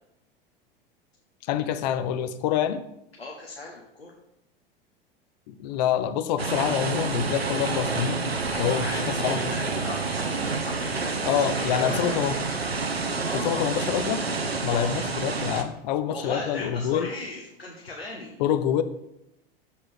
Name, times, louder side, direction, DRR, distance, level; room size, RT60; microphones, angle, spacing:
voice 1, 1.5-2.8 5.5-8.2 8.6-9.4 11.3-12.4 13.3-14.2 14.6-17.1 18.4-18.8, left 9 dB, 45° left, 11 dB, 0.6 m, -26 dB
voice 2, 3.2-4.1 8.5-12.3 13.2-13.7 14.6-15.0 16.1-18.4, left 2 dB, 85° left, -1 dB, 1.0 m, -37 dB
sound 1, 6.4-15.6, right 4 dB, 85° right, 0.7 m, -28 dB
7.3 x 4.3 x 4.9 m, 0.82 s
figure-of-eight pair, 85°, 30 cm